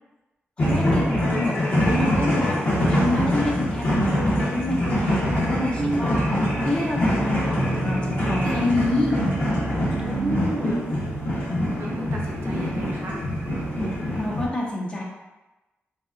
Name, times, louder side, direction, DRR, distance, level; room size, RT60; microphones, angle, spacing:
sound 1, 0.6-14.5, equal, 45° left, 1.1 m, -24 dB
voice 1, 0.6-2.6 2.9-6.2 6.6-9.2 14.1-15.0, left 2 dB, 25° left, -3 dB, 0.6 m, -27 dB
sound 2, 2.7-10.4, right 3 dB, 20° right, 0.4 m, -33 dB
voice 2, 5.8-6.1 10.0-10.9 11.8-13.2, right 2 dB, 70° right, -2 dB, 0.7 m, -32 dB
4.0 x 2.2 x 2.4 m, 1.1 s
wide cardioid pair, 110°, 4 cm